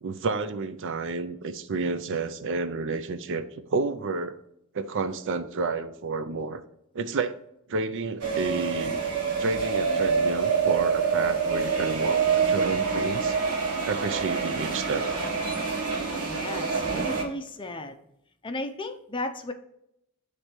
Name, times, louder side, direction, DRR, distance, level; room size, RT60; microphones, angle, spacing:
voice 1, 0.0-3.4 3.7-4.4 4.7-6.6 6.9-7.3 7.7-9.0 9.4-13.4 13.8-15.1, right 4 dB, 55° right, 10 dB, 0.5 m, -30 dB
sound 1, 8.2-17.2, right 5 dB, 85° right, 1.3 m, -26 dB
voice 2, 16.2-18.0 18.4-19.5, left 2 dB, 20° left, 7 dB, 0.5 m, -35 dB
8.3 x 3.3 x 4.4 m, 0.80 s
head